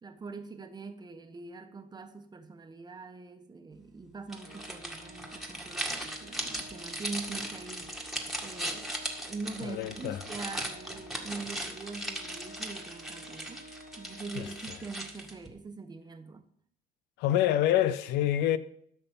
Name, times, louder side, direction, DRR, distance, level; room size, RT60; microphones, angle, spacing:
voice 1, 0.0-7.9 8.4-9.0 9.3-13.6 14.0-16.4, right 4 dB, 25° right, 1.2 m, -43 dB
sound 1, 4.3-15.5, right 1 dB, ahead, 1.8 m, -38 dB
Organ, 4.4-15.2, equal, 55° left, 1.8 m, -52 dB
voice 2, 9.6-10.2 14.3-14.5 17.2-18.6, left 12 dB, 90° left, 0.6 m, -26 dB
13.0 x 5.9 x 5.5 m
cardioid pair, 110°, 17 cm